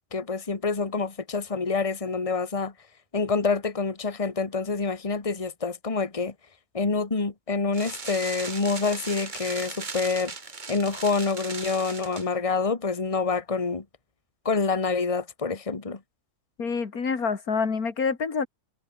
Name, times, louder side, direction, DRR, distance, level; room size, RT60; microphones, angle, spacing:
voice 1, 0.1-2.7 3.1-6.3 6.7-10.3 10.7-13.8 14.4-16.0, left 4 dB, 20° left, 1.7 m, -27 dB
sound 1, 7.7-12.3, right 4 dB, 30° right, 1.7 m, -38 dB
voice 2, 16.6-18.5, left 5 dB, 70° left, 2.8 m, -27 dB
omnidirectional pair, 1.6 m